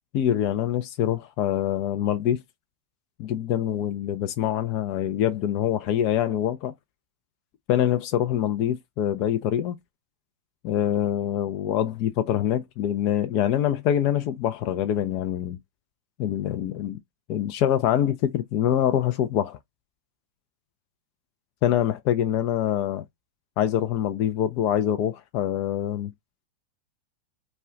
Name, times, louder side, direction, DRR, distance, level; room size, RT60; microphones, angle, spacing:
voice 1, 0.1-2.4 3.2-6.7 7.7-9.8 10.6-15.6 16.2-17.0 17.3-19.6 21.6-23.0 23.6-26.1, left 11 dB, 45° left, 0.4 m, -25 dB
2.3 x 2.1 x 3.7 m
figure-of-eight pair, 90°, 0 cm